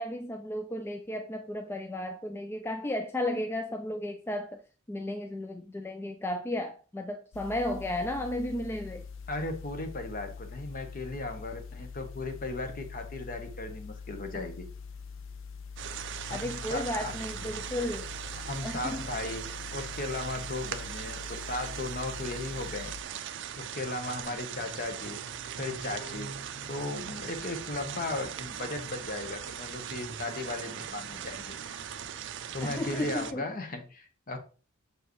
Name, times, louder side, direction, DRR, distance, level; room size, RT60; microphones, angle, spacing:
voice 1, 0.0-4.6 4.9-9.1 16.3-18.1 18.6-19.1 24.3-24.4 32.6-33.5, left 1 dB, 10° left, 0.4 m, -34 dB
sound 1, 7.3-23.0, left 5 dB, 70° left, 0.5 m, -44 dB
voice 2, 9.3-14.7 16.3-17.1 18.4-23.0 23.6-25.2 25.5-26.4 26.7-31.6 32.5-34.4, left 2 dB, 45° left, 1.0 m, -36 dB
sound 2, 15.8-33.3, right 9 dB, 60° right, 0.5 m, -40 dB
6.7 x 4.6 x 3.1 m
head